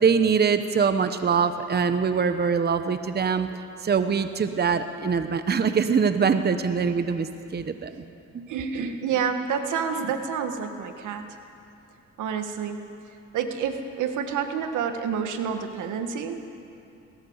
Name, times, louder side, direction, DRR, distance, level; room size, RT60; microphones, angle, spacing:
voice 1, 0.0-3.5 3.8-7.9 8.3-8.5, right 6 dB, 35° right, 9 dB, 1.0 m, -23 dB
voice 2, 8.5-11.3 12.2-12.9 13.3-16.4, right 7 dB, 80° right, 7 dB, 1.7 m, -28 dB
19.0 x 17.5 x 8.0 m, 2.6 s
cardioid pair, 90°, 30 cm